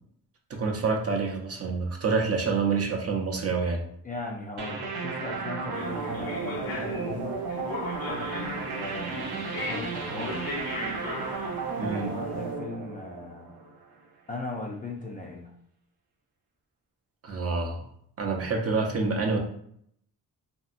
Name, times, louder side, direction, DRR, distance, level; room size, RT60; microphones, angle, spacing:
voice 1, 0.5-3.8 11.8-12.1 17.2-17.8 18.2-19.4, right 4 dB, 40° right, 1 dB, 0.6 m, -27 dB
voice 2, 4.0-7.4 8.6-10.4 12.1-13.6 14.3-15.5, left 2 dB, 25° left, -1 dB, 0.4 m, -38 dB
sound 1, 4.6-13.9, right 4 dB, 80° right, 0.7 m, -34 dB
sound 2, 5.7-12.4, left 2 dB, 65° left, 0.8 m, -37 dB
2.9 x 2.7 x 2.5 m, 0.68 s
wide cardioid pair, 125°, 39 cm